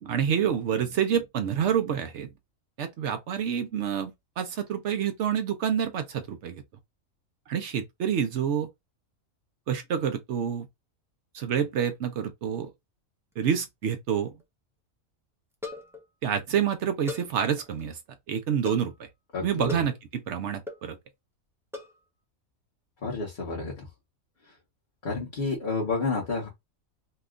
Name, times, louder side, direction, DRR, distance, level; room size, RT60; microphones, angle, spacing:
voice 1, 0.0-2.3 2.8-6.6 7.5-8.7 9.7-10.7 11.3-12.7 13.4-14.3 16.2-18.0 18.3-18.9 19.4-21.0, right 8 dB, 65° right, 0.8 m, -28 dB
sound 1, 13.3-13.8 14.1-14.2 14.4-14.5 15.5-16.1 17.1-17.8 18.6-19.0 19.7-20.0 20.7-20.9 21.7-22.0, left 4 dB, 5° right, 0.5 m, -40 dB
voice 2, 19.3-19.8 23.0-23.8 25.0-26.5, left 3 dB, 40° left, 1.1 m, -30 dB
2.8 x 2.3 x 3.6 m
omnidirectional pair, 1.4 m